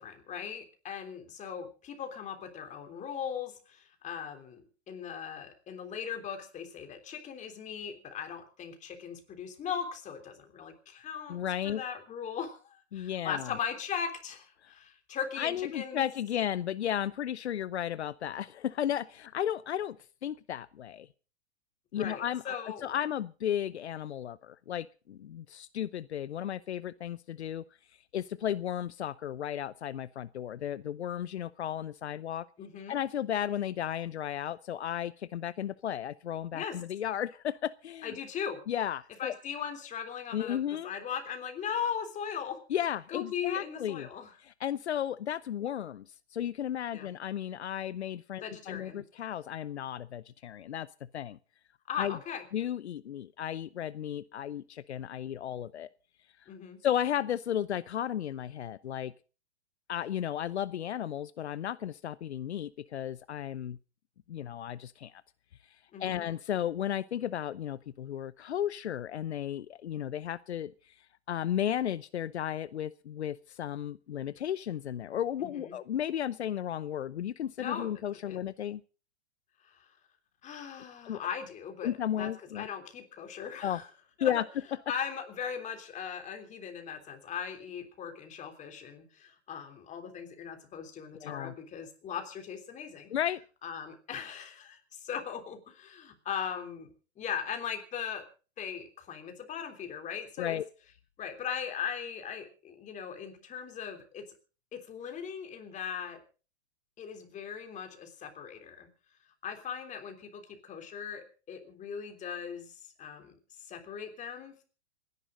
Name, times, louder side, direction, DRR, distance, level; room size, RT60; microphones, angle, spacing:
voice 1, 0.0-11.4 11.6-16.1 21.9-22.9 32.6-33.0 36.5-36.7 38.0-38.6 39.2-42.6 43.1-44.3 46.9-47.1 48.3-49.0 51.9-52.4 56.5-56.8 65.9-66.2 75.4-75.8 77.6-77.9 78.3-78.4 79.6-79.9 80.4-81.9 82.2-82.3 82.5-83.9 84.2-84.3 84.9-93.1 93.6-96.9 97.2-98.2 98.6-100.6 101.2-104.2 104.7-106.2 107.0-108.9 109.4-114.6, left 7 dB, 20° left, 5 dB, 3.4 m, -39 dB
voice 2, 11.3-11.8 12.9-13.5 14.6-14.7 15.4-20.0 20.2-21.1 21.9-27.6 28.1-32.5 32.9-38.1 38.7-39.3 40.3-40.9 42.7-44.1 44.4-50.9 51.1-51.4 52.0-52.2 52.5-55.9 56.8-59.1 59.9-63.8 64.3-65.1 66.0-70.7 71.3-78.8 81.0-81.2 81.8-82.7 83.6-83.8 84.2-84.4 91.2-91.5 93.1-93.4 100.4-100.7, left 10 dB, 80° left, 17 dB, 0.7 m, -34 dB
27.0 x 11.0 x 3.8 m, 0.36 s
hypercardioid pair, 125°, 33 cm